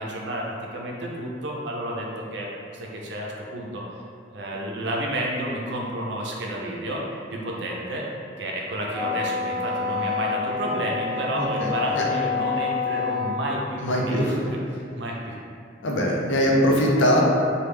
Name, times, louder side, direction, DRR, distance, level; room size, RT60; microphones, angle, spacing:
voice 1, 0.0-3.8 4.3-7.0 7.3-8.1 8.4-14.2 14.7-15.4, right 1 dB, 65° right, -2 dB, 0.5 m, -30 dB
Wind instrument woodwind instrument, 8.9-13.5, left 5 dB, 5° right, 0.3 m, -28 dB
voice 2, 11.4-12.0 13.8-14.6 15.8-17.2, equal, 80° left, -2 dB, 0.5 m, -22 dB
3.3 x 2.2 x 3.2 m, 2.4 s
head